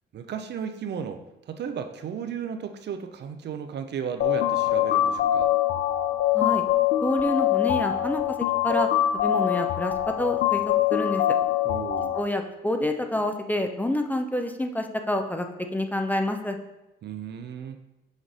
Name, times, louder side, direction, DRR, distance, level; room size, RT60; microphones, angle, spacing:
voice 1, 0.1-5.5 11.6-12.2 17.0-17.8, right 7 dB, 60° right, 7 dB, 0.6 m, -35 dB
sound 1, 4.2-12.2, left 12 dB, 65° left, 0.4 m, -24 dB
voice 2, 7.0-8.4 8.6-8.9 9.1-10.6 10.9-11.2 12.1-15.5 15.7-16.6, left 1 dB, 10° left, 5 dB, 0.5 m, -27 dB
6.4 x 3.1 x 5.4 m, 0.97 s
cardioid pair, 90°, 20 cm